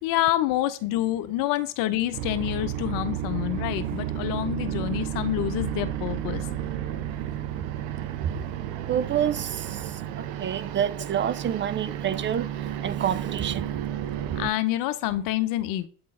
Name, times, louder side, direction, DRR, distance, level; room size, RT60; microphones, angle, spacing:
voice 1, 0.0-6.5 14.4-15.9, left 14 dB, 70° left, 0.8 m, -27 dB
sound 1, 2.1-14.5, right 11 dB, 80° right, 0.8 m, -32 dB
voice 2, 8.9-13.7, right 9 dB, 35° right, 0.5 m, -28 dB
8.7 x 3.8 x 3.7 m
supercardioid pair, 80°, 35 cm